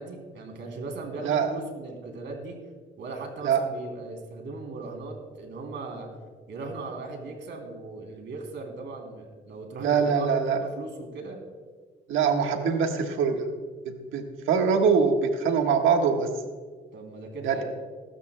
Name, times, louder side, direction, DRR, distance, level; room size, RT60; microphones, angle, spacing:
voice 1, 0.0-2.6 3.0-6.1 6.5-11.4 16.9-17.6, right 3 dB, 65° right, 2 dB, 3.2 m, -38 dB
voice 2, 9.8-10.6 12.1-13.4 13.8-16.3 17.4-17.6, right 6 dB, 85° right, 4 dB, 1.4 m, -23 dB
21.5 x 12.5 x 2.2 m, 1.5 s
cardioid pair, 90°, 20 cm